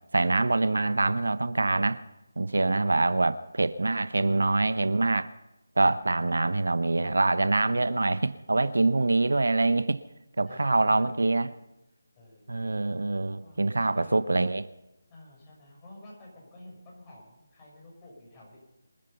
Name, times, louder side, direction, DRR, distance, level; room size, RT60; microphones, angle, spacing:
voice 1, 0.1-2.0 2.4-5.3 5.8-10.0 10.4-11.5 12.5-14.7, right 2 dB, 85° right, 14 dB, 1.0 m, -25 dB
voice 2, 10.4-11.6 12.1-12.6 13.4-14.2 15.1-18.6, left 1 dB, 20° left, -3 dB, 6.4 m, -50 dB
26.5 x 9.9 x 5.5 m, 0.94 s
figure-of-eight pair, 165°, 0 cm